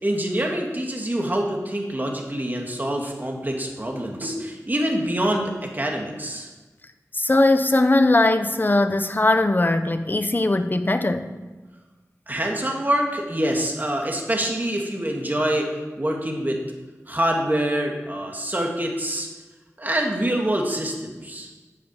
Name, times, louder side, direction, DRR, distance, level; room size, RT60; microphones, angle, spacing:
voice 1, 0.0-6.5 12.3-16.6 17.1-19.3 19.8-21.5, right 1 dB, 30° right, 1 dB, 2.4 m, -25 dB
voice 2, 7.1-11.3, left 2 dB, 35° left, 9 dB, 0.9 m, -20 dB
9.5 x 8.4 x 7.6 m, 1.2 s
wide cardioid pair, 60°, 6 cm